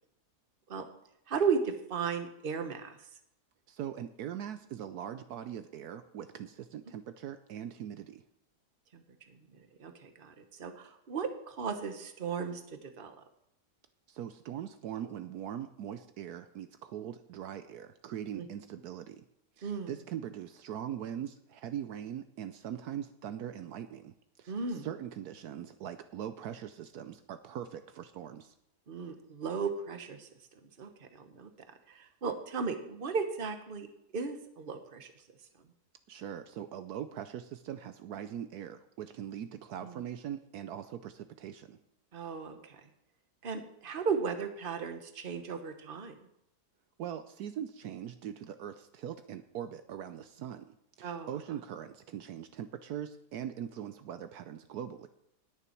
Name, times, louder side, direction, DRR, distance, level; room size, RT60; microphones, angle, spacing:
voice 1, 1.3-3.0 8.9-9.0 9.8-13.1 18.3-18.5 19.6-19.9 24.5-24.9 28.9-30.3 30.8-31.5 31.9-33.9 34.1-35.1 39.8-40.0 42.1-42.8 43.4-46.2 51.0-51.3, right 5 dB, 35° right, 7 dB, 1.2 m, -35 dB
voice 2, 3.7-8.2 14.1-19.2 19.6-28.5 36.1-41.8 47.0-50.7 51.0-55.1, right 10 dB, 75° right, 10 dB, 1.1 m, -41 dB
19.0 x 6.9 x 4.5 m, 0.79 s
omnidirectional pair, 1.8 m